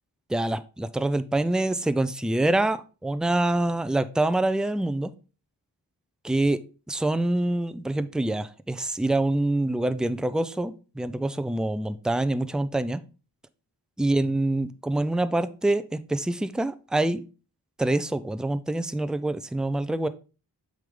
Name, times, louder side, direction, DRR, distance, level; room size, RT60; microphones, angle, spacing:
voice 1, 0.3-5.1 6.2-6.6 6.9-13.0 14.0-17.2 17.8-20.1, right 2 dB, ahead, 13 dB, 0.6 m, -25 dB
7.6 x 5.1 x 3.7 m, 0.34 s
cardioid pair, 45°, 41 cm